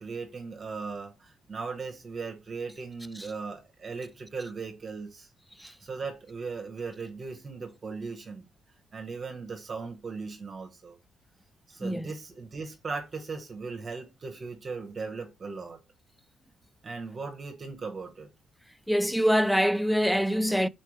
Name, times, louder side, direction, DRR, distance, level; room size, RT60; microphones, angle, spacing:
voice 1, 0.0-5.3 5.8-8.5 8.9-11.0 11.7-15.8 16.8-18.3, right 4 dB, 40° right, 1.1 m, -38 dB
voice 2, 18.9-20.7, equal, ahead, 0.3 m, -25 dB
4.3 x 3.4 x 3.1 m
cardioid pair, 90°, 0 cm